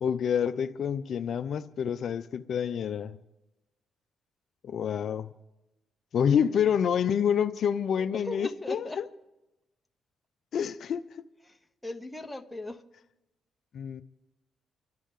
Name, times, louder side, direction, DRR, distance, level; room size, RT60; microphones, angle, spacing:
voice 1, 0.0-3.2 4.6-5.3 6.1-9.0 10.5-11.2 13.7-14.0, left 8 dB, 60° left, 0.5 m, -28 dB
voice 2, 8.0-9.0 11.4-12.8, left 2 dB, 5° left, 1.2 m, -39 dB
29.5 x 12.0 x 3.7 m
cardioid pair, 90°, 0 cm